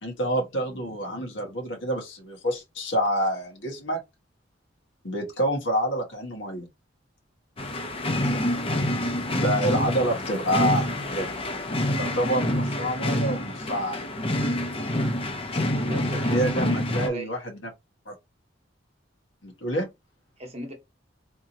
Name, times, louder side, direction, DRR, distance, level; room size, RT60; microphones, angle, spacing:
voice 1, 0.0-4.0 5.0-6.7 8.3-8.5 9.4-11.3 12.0-14.0 16.2-17.6 18.0-18.1 19.4-19.9, equal, 80° left, 1.5 m, -27 dB
sound 1, 7.6-17.1, left 1 dB, 30° left, 0.7 m, -27 dB
voice 2, 15.7-16.5 17.0-17.3 20.4-20.7, right 1 dB, 35° right, 1.0 m, -37 dB
3.6 x 2.8 x 2.7 m
head